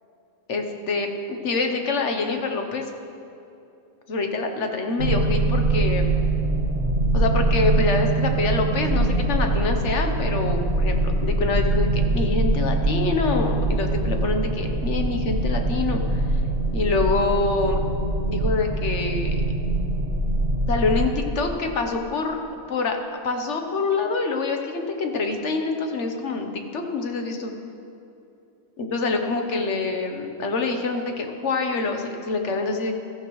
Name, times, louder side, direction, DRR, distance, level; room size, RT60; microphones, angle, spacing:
voice 1, 0.5-2.9 4.1-6.1 7.1-16.4 16.7-17.8 18.3-19.3 20.7-22.4 22.7-23.0 23.2-27.5 28.8-32.9, left 3 dB, 60° left, 4 dB, 1.3 m, -26 dB
sound 1, 5.0-21.2, right 2 dB, 45° right, 1.3 m, -23 dB
15.0 x 14.5 x 3.2 m, 2.8 s
omnidirectional pair, 1.4 m